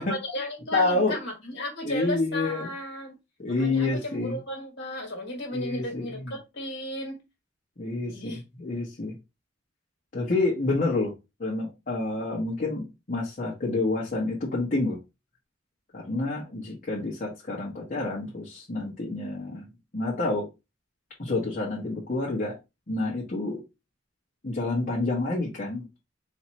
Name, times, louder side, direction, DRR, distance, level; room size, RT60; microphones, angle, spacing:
voice 1, 0.0-3.1 3.6-7.2 8.1-8.4, left 1 dB, 65° left, 1.7 m, -34 dB
voice 2, 0.7-1.1 1.8-2.7 3.4-4.4 5.5-6.3 7.8-9.2 10.1-11.1 11.4-15.0 15.9-19.7 19.9-20.5 21.2-22.6 22.9-23.6 24.4-25.8, left 2 dB, 45° left, 1.2 m, -28 dB
4.2 x 2.8 x 2.9 m
head